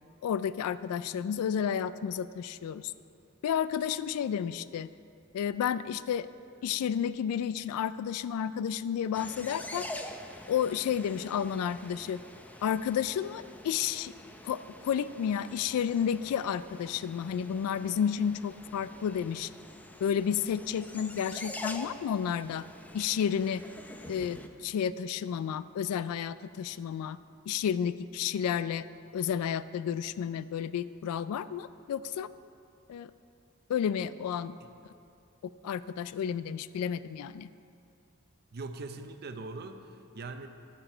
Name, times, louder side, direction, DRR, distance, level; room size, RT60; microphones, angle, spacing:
voice 1, 0.2-2.9 3.4-4.9 5.3-6.3 6.6-9.9 10.5-12.2 12.6-14.1 14.4-19.5 20.0-22.6 22.9-23.6 24.1-27.2 27.5-28.8 29.1-32.3 32.9-33.1 33.7-34.6 35.6-37.5, left 8 dB, 85° left, 16 dB, 0.3 m, -31 dB
sound 1, 9.1-24.5, left 1 dB, 5° left, 0.5 m, -46 dB
voice 2, 38.5-40.5, right 3 dB, 45° right, 7 dB, 0.6 m, -41 dB
15.5 x 6.0 x 4.5 m, 2.6 s
head